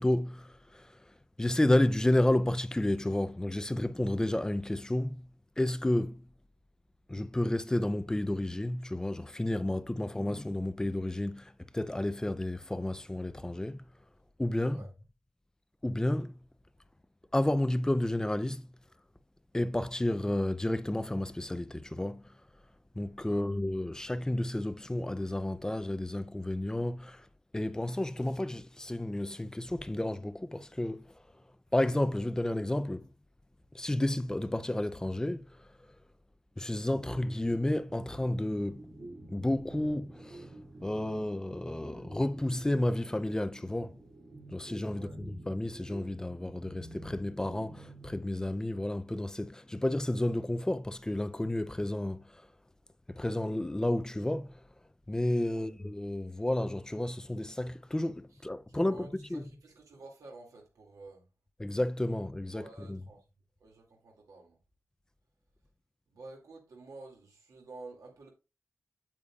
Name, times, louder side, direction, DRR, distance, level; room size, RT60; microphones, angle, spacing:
voice 1, 0.0-5.3 5.6-6.3 7.1-13.9 14.4-14.8 15.8-16.4 17.3-18.7 19.5-22.4 22.9-27.3 27.5-31.2 31.7-33.1 33.7-35.7 36.6-38.9 39.3-44.0 44.5-52.5 53.1-54.6 55.1-59.4 61.6-63.0, left 1 dB, 10° left, 0.5 m, -31 dB
voice 2, 14.6-14.9 23.2-23.5 44.9-45.2 55.5-55.7 58.7-61.2 62.5-63.2 63.6-64.6 66.1-68.3, right 3 dB, 85° right, 2.4 m, -51 dB
sound 1, 36.9-48.8, right 2 dB, 60° right, 3.1 m, -49 dB
8.8 x 8.2 x 2.4 m
wide cardioid pair, 135°, 6 cm